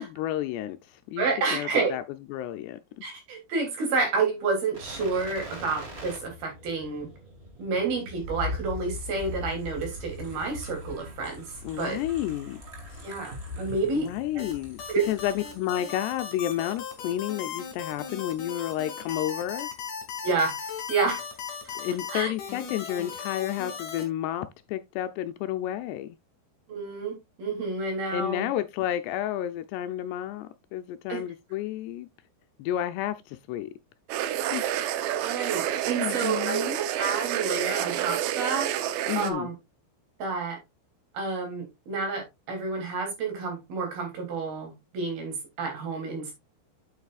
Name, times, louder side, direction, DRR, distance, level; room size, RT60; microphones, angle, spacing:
voice 1, 0.0-2.0 2.3-3.0 11.6-12.6 12.9-13.0 13.9-14.8 15.0-19.7 21.8-26.2 28.1-32.1 32.6-33.7 34.5-34.6 36.0-36.7 39.1-39.5, left 12 dB, 80° left, 2.5 m, -31 dB
voice 2, 1.2-1.9 3.0-7.1 7.6-11.5 11.8-12.0 13.0-14.1 14.3-14.4 14.9-15.0 20.2-20.5 20.9-21.2 22.1-22.3 26.7-28.5 31.1-31.2 35.1-39.5 40.2-40.6 41.1-46.3, right 4 dB, 60° right, 4.8 m, -29 dB
sound 1, 4.7-16.0 16.3-16.4, left 2 dB, 30° right, 1.2 m, -40 dB
sound 2, 14.4-24.0, left 7 dB, 50° left, 3.4 m, -37 dB
sound 3, 34.1-39.3, right 11 dB, 90° right, 3.1 m, -29 dB
8.6 x 8.2 x 2.4 m
omnidirectional pair, 5.0 m